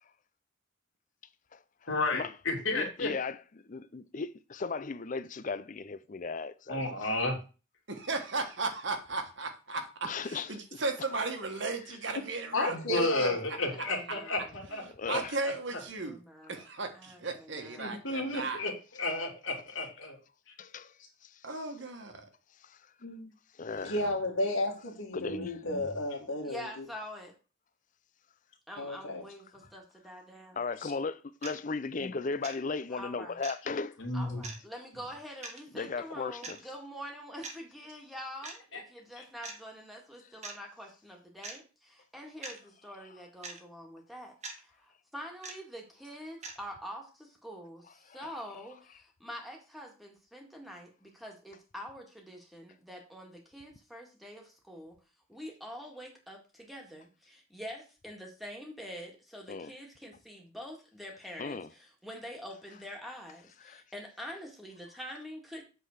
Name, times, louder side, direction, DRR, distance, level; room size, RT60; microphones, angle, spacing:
voice 1, 1.9-3.1 6.7-7.3 12.7-15.2 17.8-20.1 23.0-23.3 25.3-25.8 30.8-30.9 32.0-32.1 34.0-34.4 38.7-38.8 39.2-39.3, left 2 dB, 70° left, 2.6 m, -33 dB
voice 2, 2.7-3.4 3.7-6.8 10.0-10.8 15.0-15.4 22.6-22.8 23.6-24.0 25.1-25.6 30.6-34.0 35.7-36.6 48.2-48.3 59.5-59.7 61.4-61.7 63.6-63.8, left 4 dB, 40° left, 0.5 m, -36 dB
voice 3, 7.9-9.8 10.5-13.3 14.8-16.2 16.5-18.6 21.4-22.1 23.7-24.2, right 3 dB, 60° right, 1.5 m, -36 dB
voice 4, 12.5-13.4 23.9-26.7 28.8-29.2, left 1 dB, 85° left, 2.0 m, -32 dB
voice 5, 14.0-14.5 15.7-16.7 16.9-18.0 26.4-27.3 28.7-30.6 32.9-33.4 34.1-55.0 55.3-65.6, equal, ahead, 1.9 m, -46 dB
sound 1, 31.4-31.6 32.4-32.6 33.4-33.6 34.4-34.6 35.4-35.6 36.4-36.6 37.4-37.6 38.4-38.6 39.4-39.6 40.4-40.6 41.4-41.6 42.4-42.6 43.4-43.6 44.4-44.6 45.4-45.6 46.4-46.6, right 4 dB, 35° right, 1.3 m, -41 dB
8.1 x 3.9 x 6.4 m
head